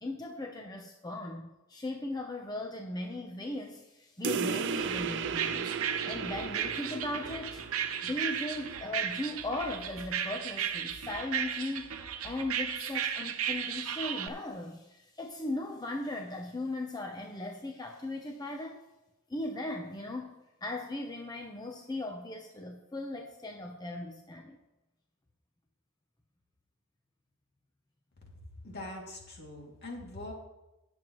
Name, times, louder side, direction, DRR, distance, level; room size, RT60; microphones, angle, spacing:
voice 1, 0.0-5.7 6.0-7.6 8.0-11.9 12.2-18.8 19.3-24.6, left 2 dB, 20° left, 2 dB, 0.7 m, -38 dB
sound 1, 4.2-9.3, right 6 dB, 55° right, 0.5 m, -36 dB
sound 2, 4.8-14.3, right 8 dB, 90° right, 0.8 m, -35 dB
voice 2, 28.3-30.3, left 2 dB, 50° left, -1 dB, 2.5 m, -43 dB
19.5 x 7.1 x 3.1 m, 1.0 s
head